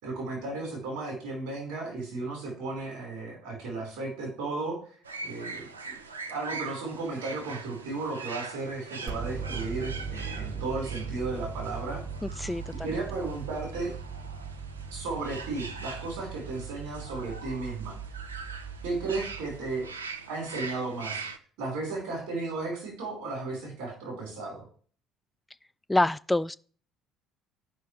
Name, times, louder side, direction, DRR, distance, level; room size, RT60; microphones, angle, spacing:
voice 1, 0.0-4.8 5.2-6.0 6.3-12.0 12.8-13.9 14.9-18.0 18.8-19.8 20.3-21.2 21.6-24.6, right 3 dB, 70° right, 4.5 m, -34 dB
sound 1, 5.0-21.4, right 4 dB, 90° right, 0.5 m, -42 dB
sound 2, 9.1-20.0, right 5 dB, 40° right, 1.3 m, -39 dB
voice 2, 12.4-12.7 25.9-26.6, left 1 dB, 10° left, 0.3 m, -25 dB
12.0 x 5.5 x 3.3 m
hypercardioid pair, 55°, 0 cm